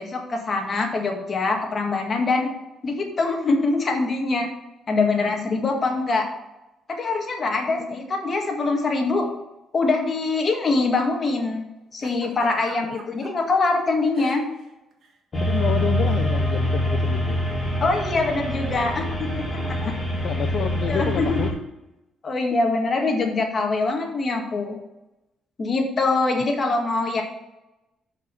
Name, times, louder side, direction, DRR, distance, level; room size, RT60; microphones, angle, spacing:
voice 1, 0.0-2.5 2.8-4.5 4.9-6.3 6.9-9.3 9.7-11.6 11.9-14.4 17.8-19.9 20.9-21.4 22.2-24.8 25.6-27.2, left 3 dB, 40° left, 3 dB, 1.8 m, -23 dB
Giggle, 12.0-13.3 14.1-14.7 14.9-15.2 16.1-16.3, right 5 dB, 65° right, 1.4 m, -42 dB
voice 2, 15.3-17.4 19.8-21.5, left 7 dB, 65° left, 7 dB, 0.5 m, -29 dB
sound 1, 15.3-21.5, equal, 10° left, 3.4 m, -25 dB
6.3 x 5.3 x 6.7 m, 0.96 s
cardioid pair, 90°, 0 cm